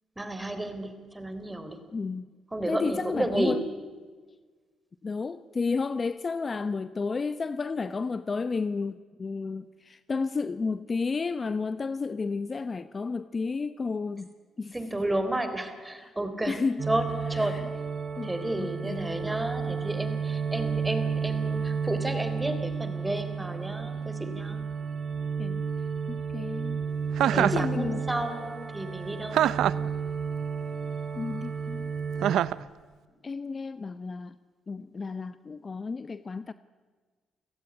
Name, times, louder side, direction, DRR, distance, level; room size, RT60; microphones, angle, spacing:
voice 1, 0.2-1.8 2.5-3.6 14.7-16.6 16.9-17.6 18.2-24.6 27.3-29.6, right 1 dB, 10° right, 3.7 m, -32 dB
voice 2, 1.9-2.3 2.7-3.6 5.0-14.3 14.6-14.7 16.5-16.8 17.4-17.6 18.2-18.3 18.6-19.2 25.4-25.6 26.1-26.8 27.4-28.1 31.1-31.9 33.2-34.3 34.7-36.5, left 4 dB, 35° left, 0.8 m, -32 dB
sound 1, 16.8-32.4, right 6 dB, 50° right, 3.3 m, -32 dB
Chuckle chortle, 27.2-27.7 29.3-29.9 32.2-32.6, right 11 dB, 80° right, 0.7 m, -24 dB
29.5 x 16.5 x 10.0 m
cardioid pair, 90°, 0 cm